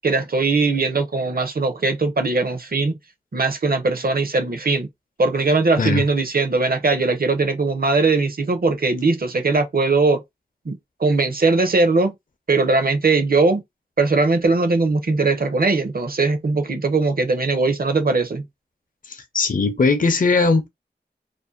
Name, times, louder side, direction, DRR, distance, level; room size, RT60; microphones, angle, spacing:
voice 1, 0.0-3.0 3.3-4.9 5.2-10.2 10.7-12.1 12.5-13.6 14.0-18.4, right 3 dB, 55° right, 0.6 m, -20 dB
voice 2, 19.1-20.7, left 4 dB, 50° left, 0.5 m, -19 dB
2.6 x 2.1 x 2.4 m
wide cardioid pair, 40°, 18 cm